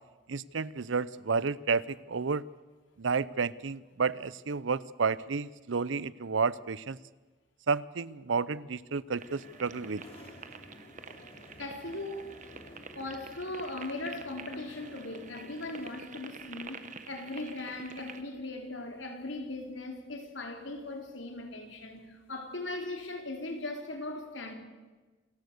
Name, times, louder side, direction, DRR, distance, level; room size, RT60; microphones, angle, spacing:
voice 1, 0.3-2.4 3.0-7.0 7.7-10.0, right 5 dB, 80° right, 0.6 m, -31 dB
sound 1, 8.8-23.7, left 1 dB, 30° left, 2.9 m, -56 dB
sound 2, 9.2-18.2, right 5 dB, 40° right, 1.4 m, -48 dB
voice 2, 11.6-12.4 12.9-24.5, left 2 dB, 75° left, 3.5 m, -39 dB
27.5 x 15.0 x 6.7 m
head